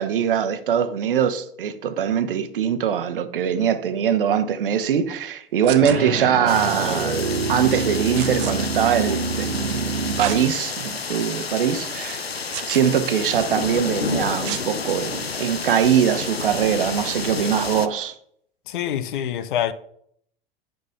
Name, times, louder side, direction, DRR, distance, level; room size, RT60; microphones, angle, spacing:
voice 1, 0.0-12.3 12.7-18.1, right 8 dB, 60° right, 0.9 m, -22 dB
sound 1, 5.6-6.0 8.2-8.5 10.2-10.4 11.0-11.1 12.5-12.9 14.4-14.7 16.2-16.4, right 13 dB, 35° right, 0.9 m, -31 dB
sound 2, 5.8-10.5, right 4 dB, 85° right, 1.0 m, -27 dB
sound 3, 6.5-17.9, left 5 dB, 90° left, 0.5 m, -30 dB
voice 2, 18.7-19.7, left 10 dB, 55° left, 0.7 m, -25 dB
9.6 x 5.2 x 5.0 m
figure-of-eight pair, 90°, 30 cm